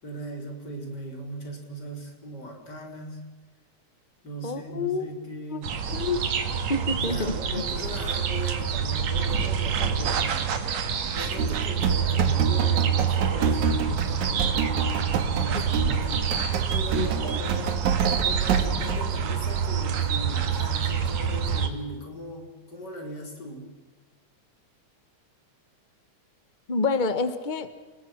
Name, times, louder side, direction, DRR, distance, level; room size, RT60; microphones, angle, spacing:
voice 1, 0.0-3.3 4.2-5.7 7.0-10.5 11.1-14.7 15.2-16.3 16.7-17.8 18.2-23.8, equal, 35° left, 2 dB, 5.1 m, -38 dB
voice 2, 4.4-5.0 5.5-5.6 5.9-6.2 6.7-7.3 16.9-17.1 26.7-27.7, left 3 dB, 75° left, 11 dB, 0.4 m, -27 dB
sound 1, 5.6-21.7, right 7 dB, 65° right, 3.0 m, -27 dB
sound 2, 11.4-19.0, right 6 dB, 85° right, 3.1 m, -27 dB
29.5 x 20.0 x 6.1 m, 1.3 s
omnidirectional pair, 3.3 m